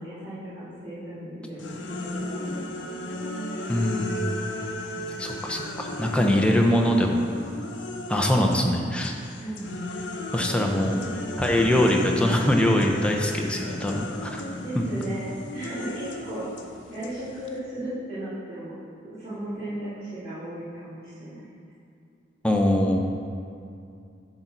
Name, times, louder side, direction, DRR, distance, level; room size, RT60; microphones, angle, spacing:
voice 1, 0.0-2.6 2.9-3.3 6.0-6.9 9.4-9.7 14.6-16.5 16.9-21.5, right 1 dB, 30° right, -15 dB, 2.2 m, -36 dB
sound 1, 1.6-8.7 9.0-17.6, left 1 dB, 75° left, 0.8 m, -35 dB
voice 2, 3.7-4.3 5.2-7.2 8.1-9.2 10.3-11.0 11.4-14.4 14.8-14.9 22.4-23.0, left 1 dB, 5° left, 1 dB, 0.7 m, -23 dB
9.9 x 4.0 x 6.0 m, 2.5 s
head